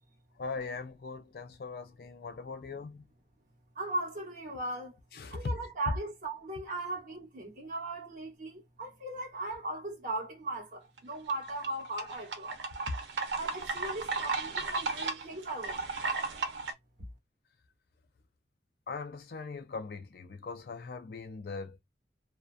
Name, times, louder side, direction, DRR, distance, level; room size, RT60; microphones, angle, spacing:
voice 1, 0.4-3.0 5.1-5.5 5.9-6.0 18.9-21.8, left 4 dB, 60° left, 0.4 m, -39 dB
voice 2, 3.7-5.0 5.3-12.6 13.4-15.9, right 2 dB, 45° right, 1.1 m, -38 dB
sound 1, 11.0-16.7, right 4 dB, 90° right, 0.6 m, -35 dB
2.5 x 2.2 x 2.2 m
head